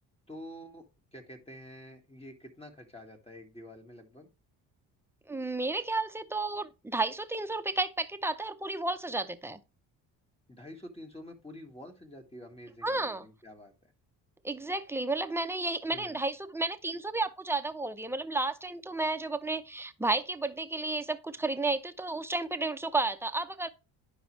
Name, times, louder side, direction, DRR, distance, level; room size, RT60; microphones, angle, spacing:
voice 1, 0.3-0.9 1.1-4.3 10.5-13.9 15.9-16.3, equal, 15° left, 1.8 m, -48 dB
voice 2, 5.3-9.6 12.8-13.3 14.4-23.7, right 2 dB, 5° right, 0.6 m, -32 dB
10.5 x 4.9 x 3.2 m
supercardioid pair, 75°, 42 cm